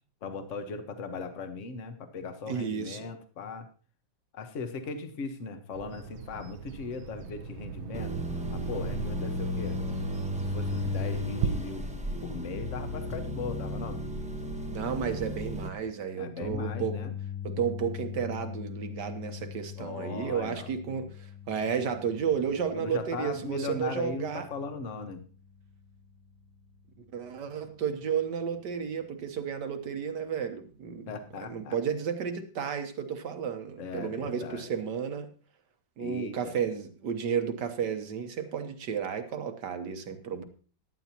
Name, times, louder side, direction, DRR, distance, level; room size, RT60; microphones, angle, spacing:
voice 1, 0.2-3.7 4.3-8.1 8.5-9.8 10.4-11.9 12.2-14.0 16.2-17.1 19.8-20.7 22.7-25.2 31.1-31.8 33.8-34.7 36.0-36.5, left 4 dB, 45° left, 7 dB, 1.3 m, -38 dB
voice 2, 2.5-3.1 14.7-17.1 17.4-24.5 27.1-31.1 31.4-35.3 36.0-40.4, right 7 dB, 60° right, 8 dB, 1.5 m, -32 dB
Bird vocalization bird call bird song, 5.7-11.5, right 7 dB, 90° right, 1.7 m, -39 dB
sound 1, 7.9-15.7, left 1 dB, 5° right, 0.7 m, -34 dB
sound 2, 16.4-28.7 29.0-29.3 31.5-31.6, left 9 dB, 75° left, 2.5 m, -43 dB
15.0 x 11.0 x 2.9 m, 0.39 s
omnidirectional pair, 2.2 m